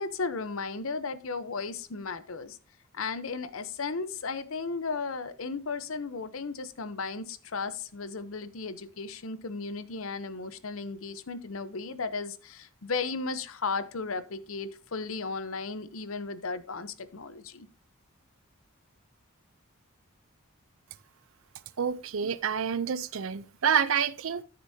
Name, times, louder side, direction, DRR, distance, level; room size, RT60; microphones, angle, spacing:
voice 1, 0.0-2.6 2.9-17.7, left 4 dB, 70° left, 0.8 m, -35 dB
voice 2, 21.8-24.4, right 7 dB, 70° right, 0.5 m, -28 dB
13.5 x 6.7 x 2.7 m
head